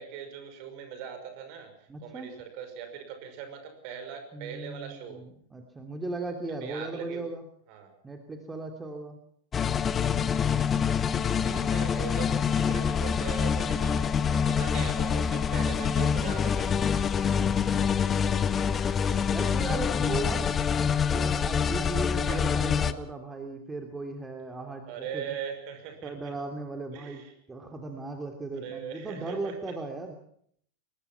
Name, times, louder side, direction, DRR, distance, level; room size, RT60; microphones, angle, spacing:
voice 1, 0.0-5.2 6.6-7.2 7.7-7.9 11.2-16.8 17.7-18.6 19.1-19.3 22.3-22.4 24.9-26.3 26.9-27.3 28.6-29.7, right 8 dB, 45° right, 7 dB, 5.9 m, -41 dB
voice 2, 1.9-2.3 4.3-7.4 8.0-9.2 15.5-16.4 17.4-17.9 19.3-20.7 21.1-25.3 26.0-27.2 27.5-30.2, right 2 dB, 10° right, 4 dB, 2.9 m, -37 dB
sound 1, 9.5-22.9, left 7 dB, 20° left, 1.1 m, -26 dB
23.0 x 20.0 x 5.9 m, 0.64 s
figure-of-eight pair, 90°, 0 cm